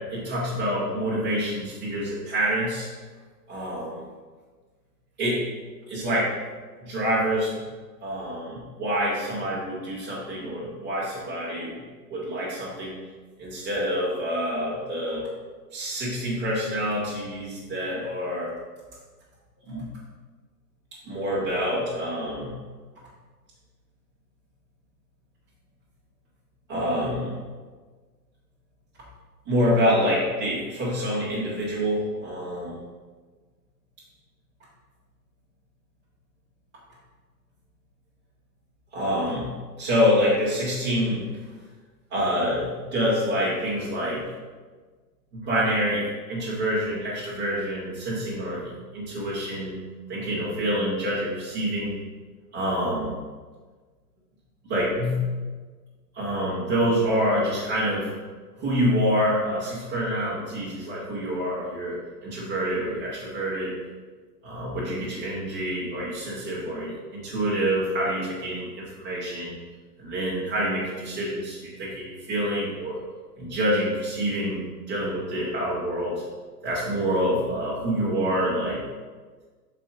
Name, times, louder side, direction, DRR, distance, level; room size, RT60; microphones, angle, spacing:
voice 1, 0.0-2.9 3.5-4.0 5.2-5.4 5.9-6.3 6.8-7.5 8.0-11.7 12.1-13.0 13.4-15.3 15.7-18.5 19.7-19.9 21.0-22.5 26.7-27.4 29.5-32.8 38.9-41.2 42.1-44.2 45.3-49.8 50.1-52.0 52.5-53.1 54.6-55.3 56.1-58.1 58.6-63.7 64.4-69.6 70.0-73.0 73.4-76.2 76.6-78.8, equal, 10° right, -10 dB, 0.6 m, -27 dB
7.1 x 4.1 x 3.8 m, 1.4 s
hypercardioid pair, 170°, 49 cm